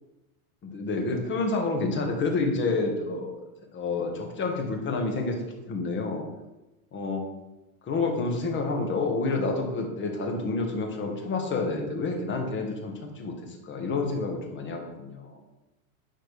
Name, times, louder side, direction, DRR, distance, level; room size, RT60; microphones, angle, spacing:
voice 1, 0.6-3.3 3.7-5.4 5.7-6.3 6.9-7.2 7.8-15.4, left 3 dB, 25° left, 2 dB, 1.5 m, -29 dB
10.5 x 4.5 x 3.3 m, 1.0 s
supercardioid pair, 130°, 43 cm